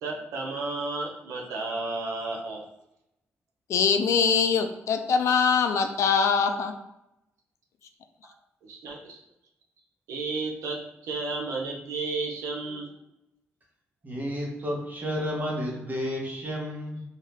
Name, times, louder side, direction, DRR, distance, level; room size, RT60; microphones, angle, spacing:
voice 1, 0.0-2.6 8.6-9.2 10.1-12.9, right 3 dB, 85° right, 0 dB, 0.6 m, -32 dB
voice 2, 3.7-6.7, left 6 dB, 70° left, 6 dB, 0.3 m, -23 dB
voice 3, 14.0-17.0, equal, 35° right, -3 dB, 1.2 m, -31 dB
2.7 x 2.3 x 3.3 m, 0.86 s
cardioid pair, 70°, 5 cm